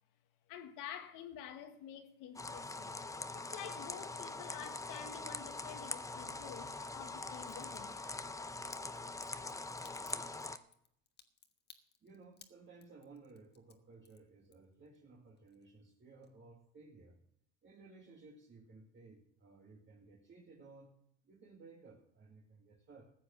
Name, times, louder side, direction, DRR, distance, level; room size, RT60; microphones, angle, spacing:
voice 1, 0.5-3.0 3.3-8.0, left 9 dB, 75° left, 1.7 m, -49 dB
sound 1, 2.4-10.6, left 2 dB, 10° left, 0.7 m, -43 dB
Crack, 7.4-7.8 8.7-15.0 15.3-15.9 16.2-16.3, left 6 dB, 30° left, 1.4 m, -60 dB
voice 2, 12.0-17.2 17.6-20.9 21.2-23.1, right 3 dB, 35° right, 2.1 m, -58 dB
14.5 x 8.2 x 7.1 m
supercardioid pair, 105°, 33 cm